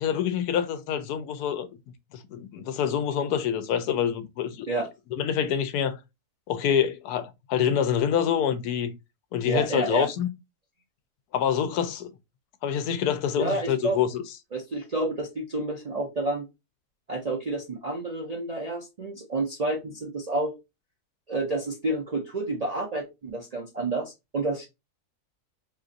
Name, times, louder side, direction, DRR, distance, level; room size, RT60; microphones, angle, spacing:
voice 1, 0.0-1.7 2.1-4.7 5.1-6.0 6.5-8.9 9.3-10.3 11.3-12.1 12.6-14.2, left 8 dB, 85° left, 1.1 m, -26 dB
voice 2, 9.5-10.1 13.4-14.0 14.5-16.5 17.1-20.5 21.3-24.7, right 2 dB, 55° right, 0.4 m, -29 dB
2.9 x 2.5 x 3.7 m
omnidirectional pair, 1.6 m